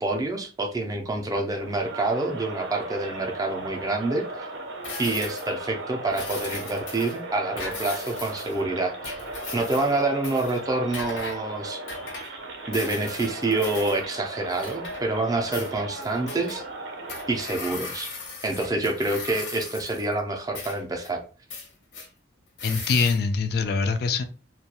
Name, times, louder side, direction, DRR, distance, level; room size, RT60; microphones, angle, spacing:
voice 1, 0.0-4.5 5.0-9.2 9.5-11.8 12.7-16.6 17.3-18.1 18.4-21.2, right 2 dB, 20° right, 2 dB, 0.4 m, -27 dB
Crowd, 1.5-17.8, right 2 dB, 80° right, 0.6 m, -37 dB
sound 1, 4.8-5.6 6.1-7.2 7.6-8.6 9.0-10.0 10.2-10.6 10.9-11.4 11.9-12.4 12.7-14.0 14.5-15.3 15.5-16.6 17.1-20.1 20.5-21.1 21.5-22.1 22.6-23.2, left 3 dB, 90° left, 0.8 m, -38 dB
voice 2, 22.6-24.2, left 4 dB, 55° left, 8 dB, 0.3 m, -24 dB
2.3 x 2.2 x 2.8 m, 0.36 s
head